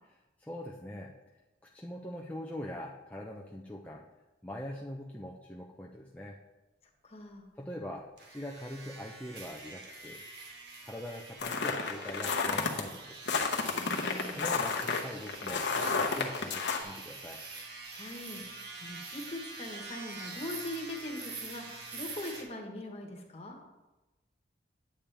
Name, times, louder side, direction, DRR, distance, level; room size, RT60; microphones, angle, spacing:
voice 1, 0.4-1.2 1.6-4.0 4.4-6.4 7.6-10.2 10.8-13.2 14.3-17.4, left 1 dB, 10° left, -3 dB, 0.5 m, -43 dB
voice 2, 7.0-7.4 13.7-14.4 17.9-23.6, left 1 dB, 35° left, 1 dB, 1.3 m, -42 dB
sound 1, 8.2-22.4, right 3 dB, 60° right, 1.4 m, -45 dB
sound 2, 11.4-12.8 13.3-16.8, left 4 dB, 60° left, 0.9 m, -31 dB
8.8 x 8.6 x 3.4 m, 1.1 s
head